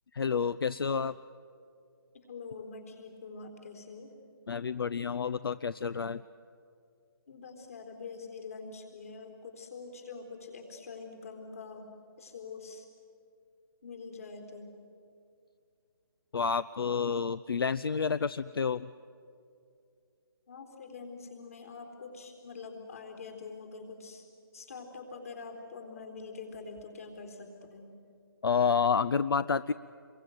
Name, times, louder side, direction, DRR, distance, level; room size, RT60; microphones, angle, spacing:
voice 1, 0.1-1.1 4.5-6.2 16.3-18.9 28.4-29.7, left 6 dB, 70° left, 15 dB, 0.6 m, -29 dB
voice 2, 2.3-4.1 7.3-11.9 12.2-12.9 13.8-14.7 20.5-24.3 24.5-27.9, left 4 dB, 35° left, 3 dB, 4.0 m, -45 dB
28.5 x 22.5 x 9.2 m, 2.4 s
hypercardioid pair, 175°, 13 cm